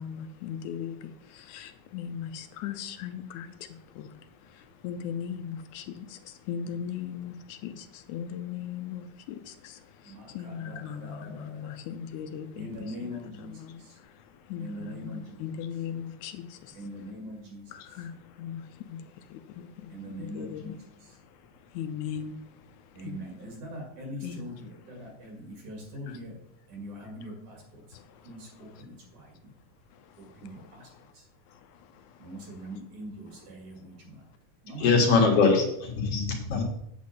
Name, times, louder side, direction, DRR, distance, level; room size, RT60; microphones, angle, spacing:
voice 1, 0.0-12.7 13.0-16.8 17.7-23.2 24.2-24.4 25.0-25.1 26.1-26.2 27.9-28.4 28.7-28.8 29.9-30.4 31.0-31.1 31.5-32.3, left 8 dB, 80° left, 1.9 m, -39 dB
voice 2, 10.0-11.7 12.6-14.0 14.6-15.4 16.7-17.7 19.9-21.2 22.9-26.4 26.7-27.8 28.2-29.5 30.2-30.9 31.1-31.2 32.2-34.2 34.6-35.2, equal, 60° right, 3.4 m, -42 dB
voice 3, 34.8-36.6, left 4 dB, 55° left, 2.1 m, -22 dB
8.4 x 7.8 x 4.2 m
omnidirectional pair, 3.7 m